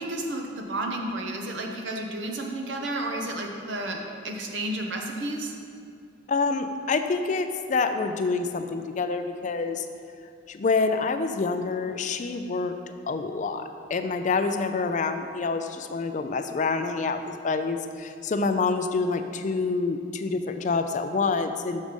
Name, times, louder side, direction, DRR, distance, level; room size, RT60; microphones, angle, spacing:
voice 1, 0.0-5.5, right 1 dB, 65° right, 2 dB, 0.9 m, -32 dB
voice 2, 6.3-9.8 10.5-12.7 13.1-21.8, left 4 dB, 40° left, 8 dB, 0.3 m, -27 dB
6.6 x 6.2 x 5.2 m, 2.4 s
head